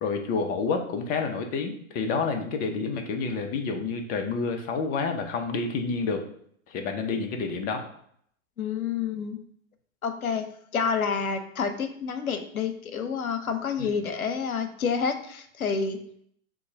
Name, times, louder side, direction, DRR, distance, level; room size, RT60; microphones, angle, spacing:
voice 1, 0.0-6.2 6.7-7.9 13.8-13.9, left 4 dB, 20° left, 5 dB, 0.5 m, -29 dB
voice 2, 8.6-9.4 10.0-10.5 10.7-16.0, left 6 dB, 85° left, 7 dB, 0.8 m, -28 dB
3.8 x 2.7 x 4.8 m, 0.65 s
hypercardioid pair, 115°, 42 cm